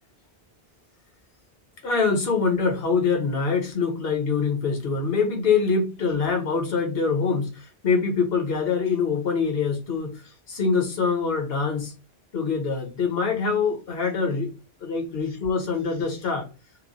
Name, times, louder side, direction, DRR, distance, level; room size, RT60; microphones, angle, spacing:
voice 1, 1.8-11.9 12.3-14.5 14.8-16.5, left 5 dB, 70° left, 3 dB, 1.1 m, -24 dB
3.0 x 2.1 x 2.5 m, 0.32 s
omnidirectional pair, 1.1 m